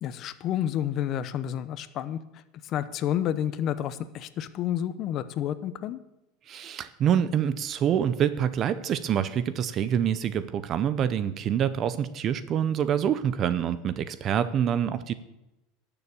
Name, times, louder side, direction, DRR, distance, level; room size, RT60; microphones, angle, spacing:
voice 1, 0.0-6.0, left 10 dB, 45° left, 14 dB, 0.8 m, -30 dB
voice 2, 6.5-15.1, right 9 dB, 35° right, 13 dB, 0.7 m, -26 dB
12.0 x 7.1 x 8.6 m, 0.92 s
supercardioid pair, 135°, 0 cm